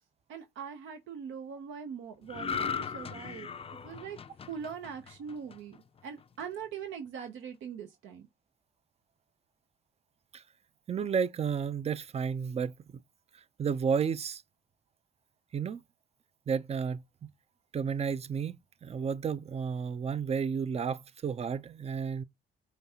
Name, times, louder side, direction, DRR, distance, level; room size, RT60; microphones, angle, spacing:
voice 1, 0.3-4.2 4.5-5.8 6.0-8.3, right 7 dB, 80° right, 0.7 m, -42 dB
sound 1, 2.3-5.8 6.2-6.4, left 6 dB, 30° left, 0.4 m, -38 dB
voice 2, 10.9-13.0 13.6-14.4 15.5-15.8 16.5-17.3 17.7-22.2, right 6 dB, 30° right, 0.4 m, -32 dB
5.1 x 2.3 x 2.7 m
cardioid pair, 90°, 20 cm